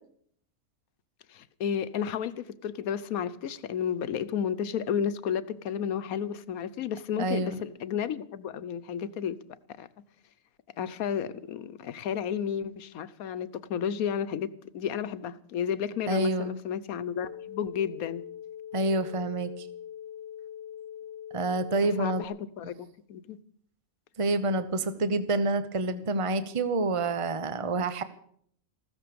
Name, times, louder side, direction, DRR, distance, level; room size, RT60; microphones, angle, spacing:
voice 1, 1.3-9.4 9.8-9.9 10.8-14.5 14.7-18.2 22.0-23.4, left 8 dB, 85° left, 1.3 m, -32 dB
voice 2, 7.2-7.6 16.1-16.6 18.7-19.7 21.3-22.3 24.2-28.0, right 2 dB, 25° right, 0.9 m, -28 dB
sound 1, 17.3-22.3, left 9 dB, 15° left, 1.5 m, -42 dB
15.5 x 13.5 x 6.9 m
omnidirectional pair, 1.5 m